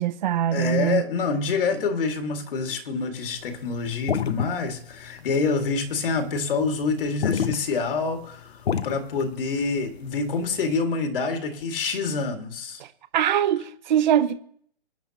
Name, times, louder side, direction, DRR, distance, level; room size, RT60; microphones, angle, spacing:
voice 1, 0.0-1.0 12.8-12.9 13.1-14.3, right 10 dB, 50° right, 0.7 m, -22 dB
voice 2, 0.5-12.8, left 4 dB, 60° left, 2.2 m, -27 dB
sound 1, 3.3-10.7, left 7 dB, 90° left, 0.9 m, -29 dB
21.5 x 9.7 x 3.0 m
hypercardioid pair, 160°, 31 cm